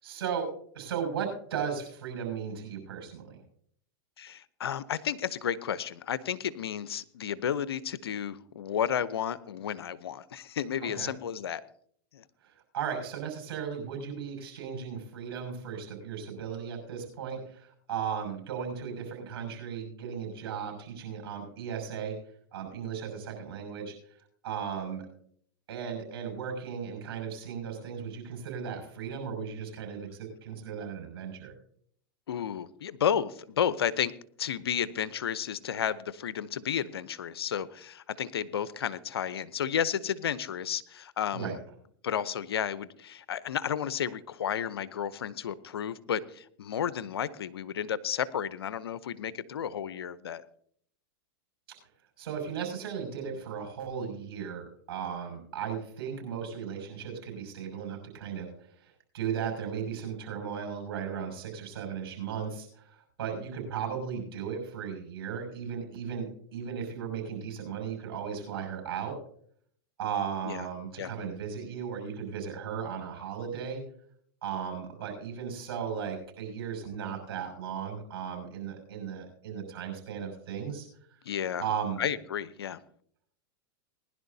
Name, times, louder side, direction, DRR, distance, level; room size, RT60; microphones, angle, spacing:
voice 1, 0.0-0.5 0.7-3.4 10.8-11.1 12.4-22.2 22.5-23.9 24.4-25.1 25.7-31.5 41.3-41.6 52.2-58.5 58.8-69.2 70.0-73.8 74.4-80.9 81.6-82.0, right 7 dB, 80° right, 4 dB, 6.3 m, -36 dB
voice 2, 4.2-11.6 12.1-12.2 32.3-34.1 34.4-41.6 42.0-50.4 70.4-70.6 71.0-71.1 81.3-81.6 82.0-82.8, left 8 dB, 90° left, 17 dB, 0.7 m, -32 dB
20.5 x 11.0 x 2.7 m, 0.62 s
hypercardioid pair, 110°, 13 cm